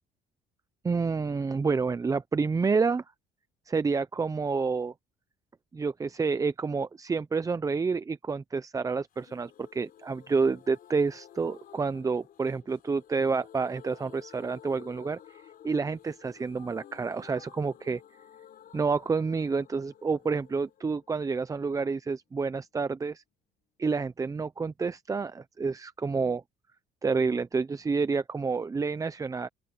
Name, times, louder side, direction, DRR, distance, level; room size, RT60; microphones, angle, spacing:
voice 1, 0.8-3.0 3.7-4.9 5.7-15.2 15.6-18.0 18.7-23.2 23.8-26.4 27.0-29.5, right 4 dB, 20° right, 0.6 m, -29 dB
sound 1, 9.1-22.7 23.0-23.1 23.3-23.4, left 10 dB, 60° left, 4.9 m, -53 dB
open air
cardioid pair, 110°, 17 cm